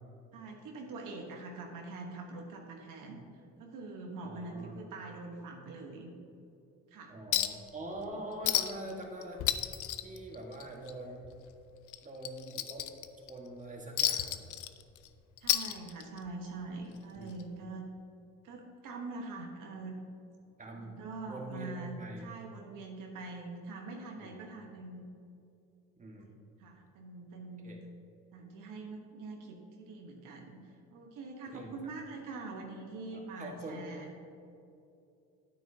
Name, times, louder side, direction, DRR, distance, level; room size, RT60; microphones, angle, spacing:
voice 1, 0.3-3.2 3.6-6.1 6.9-7.1 15.4-17.9 18.4-20.0 20.8-25.1 26.6-27.8 28.3-34.1, right 3 dB, 70° right, 1 dB, 1.2 m, -44 dB
voice 2, 4.2-4.7 7.1-9.4 10.0-11.3 12.0-12.9 13.3-14.4 17.1-17.3 17.6-17.7 20.6-20.9 21.3-22.2 24.2-24.4 26.0-26.3 27.6-27.8 31.5-31.8 33.1-33.9, right 1 dB, 25° right, 0 dB, 1.6 m, -44 dB
Chink clink, 7.3-7.7 8.0-8.1 8.4-8.9 9.2-10.9 11.2-11.4 11.9-13.3 14.0-15.1 15.4-16.3 17.4-17.5, left 12 dB, 65° left, 0.5 m, -32 dB
9.3 x 9.1 x 2.8 m, 2.7 s
cardioid pair, 90°, 33 cm